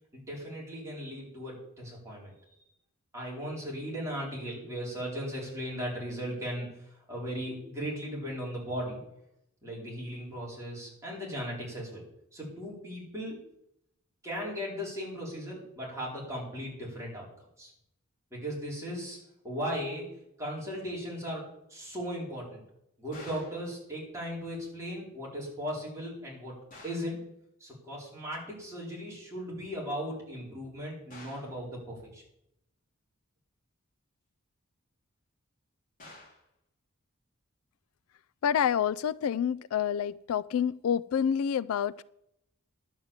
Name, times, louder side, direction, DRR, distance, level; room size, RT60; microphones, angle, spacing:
voice 1, 0.1-2.3 3.1-9.0 9.6-12.0 12.3-13.4 14.2-17.7 18.3-19.2 19.4-22.6 23.0-26.6 26.8-27.2 27.6-32.2, equal, 15° right, -5 dB, 4.4 m, -37 dB
sound 1, 23.1-23.7 26.7-27.2 31.1-31.6 36.0-36.5, left 2 dB, 35° left, 3.4 m, -49 dB
voice 2, 38.4-42.0, left 8 dB, 75° left, 20 dB, 0.3 m, -28 dB
11.0 x 7.8 x 7.3 m, 0.80 s
head